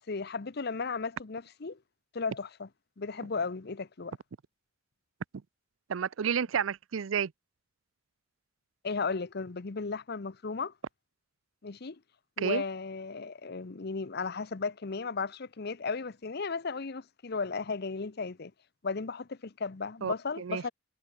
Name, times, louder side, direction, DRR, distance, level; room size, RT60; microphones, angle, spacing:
voice 1, 0.0-1.8 2.1-2.7 3.0-4.1 8.8-10.7 11.6-12.0 12.4-18.5 18.8-20.7, left 4 dB, 55° left, 0.8 m, -35 dB
voice 2, 5.9-7.3 12.4-12.6 20.0-20.7, right 7 dB, 80° right, 0.5 m, -31 dB
head